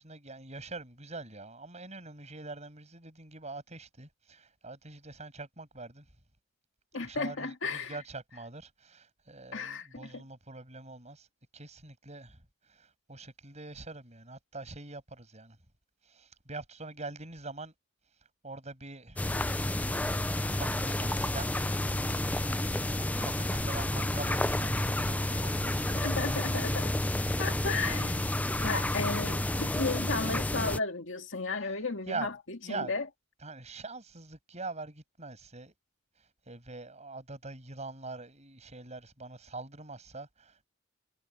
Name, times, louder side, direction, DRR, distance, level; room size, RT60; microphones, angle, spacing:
voice 1, 0.0-6.1 7.0-11.3 11.5-15.6 16.0-17.7 18.4-21.6 22.6-26.7 27.8-28.2 31.6-31.8 32.1-32.3 32.6-33.0 33.4-35.7 36.2-40.7, right 3 dB, 35° right, 7.7 m, -44 dB
voice 2, 6.9-7.9 9.5-10.2 26.0-26.9 27.4-28.3 28.6-32.3 32.7-33.0, left 3 dB, 65° left, 2.1 m, -34 dB
sound 1, 19.2-30.8, left 1 dB, 5° left, 0.5 m, -30 dB
head